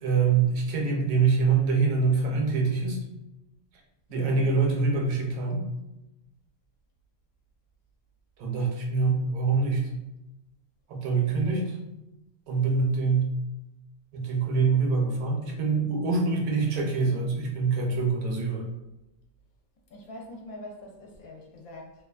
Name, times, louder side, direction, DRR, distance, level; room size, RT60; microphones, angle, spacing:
voice 1, 0.0-3.0 4.1-5.6 8.4-9.9 10.9-11.7 12.5-13.3 14.1-18.7, right 4 dB, 75° right, 0 dB, 1.1 m, -25 dB
voice 2, 4.1-4.5 11.2-11.7 19.9-21.9, left 1 dB, 75° left, -1 dB, 1.0 m, -44 dB
2.7 x 2.3 x 2.3 m, 0.93 s
omnidirectional pair, 1.6 m